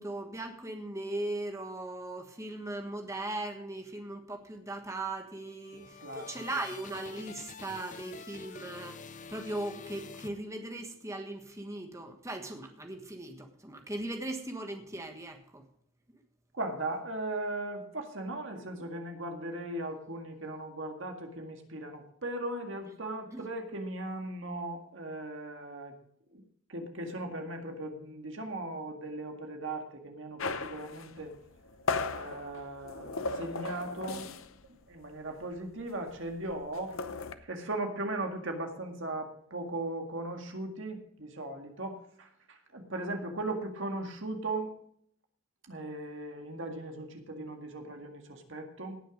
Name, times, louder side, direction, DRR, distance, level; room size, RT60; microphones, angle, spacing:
voice 1, 0.0-9.0 9.3-15.6 23.3-23.4, right 2 dB, 15° right, 5 dB, 1.4 m, -38 dB
sound 1, 5.4-11.0, left 5 dB, 35° left, 0.5 m, -48 dB
voice 2, 5.7-6.5 16.5-25.9 26.3-26.4 26.7-31.3 32.1-34.3 34.9-37.0 37.3-44.7 45.7-49.0, right 2 dB, 60° right, 4 dB, 1.9 m, -38 dB
sound 2, 30.4-34.6 34.9-35.1 35.4-37.3, left 4 dB, 70° left, 0.8 m, -36 dB
18.0 x 6.5 x 5.2 m, 0.65 s
head